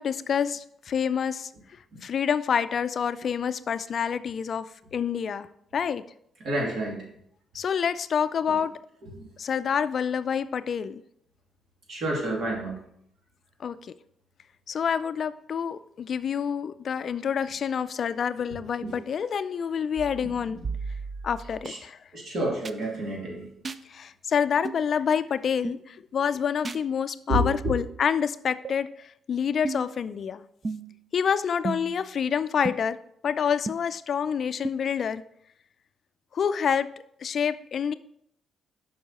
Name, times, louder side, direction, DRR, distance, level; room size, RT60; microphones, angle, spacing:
voice 1, 0.0-1.5 2.0-6.0 7.5-8.8 9.4-11.0 13.6-13.9 14.7-20.6 21.2-22.0 23.9-30.4 31.1-33.0 33.2-35.2 36.3-36.9 37.2-37.9, left 7 dB, 55° left, 14 dB, 0.3 m, -27 dB
voice 2, 6.4-7.1 8.5-8.6 9.0-9.3 11.9-12.8 18.8-19.0 20.2-20.6 21.6-21.8 22.1-23.5 27.3-27.7, right 1 dB, 60° right, -2 dB, 2.7 m, -30 dB
sound 1, 20.0-21.7 22.6-22.8 23.6-23.8 24.6-24.8 25.6-25.8 26.6-26.8 27.6-27.8 28.6-28.8 29.6-30.0 30.6-31.0 31.6-32.1 32.6-32.7 33.7-33.8 34.6-34.7, right 4 dB, 35° right, 0.4 m, -34 dB
6.7 x 5.4 x 4.2 m, 0.71 s
cardioid pair, 90°, 0 cm